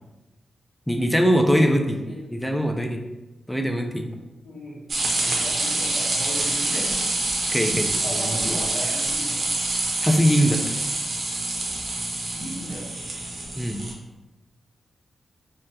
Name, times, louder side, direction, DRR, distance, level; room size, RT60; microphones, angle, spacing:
voice 1, 0.9-2.0 2.3-3.0 3.5-4.0 7.5-7.9 8.2-8.3 10.0-10.6 13.6-13.8, equal, 5° left, 4 dB, 0.3 m, -21 dB
voice 2, 1.6-2.3 4.4-7.0 7.4-7.5 8.0-9.4 12.3-12.9, equal, 65° left, -8 dB, 1.0 m, -36 dB
sound 1, 4.9-13.9, right 2 dB, 55° right, 0.6 m, -26 dB
2.6 x 2.2 x 3.4 m, 1.1 s
cardioid pair, 95°, 0 cm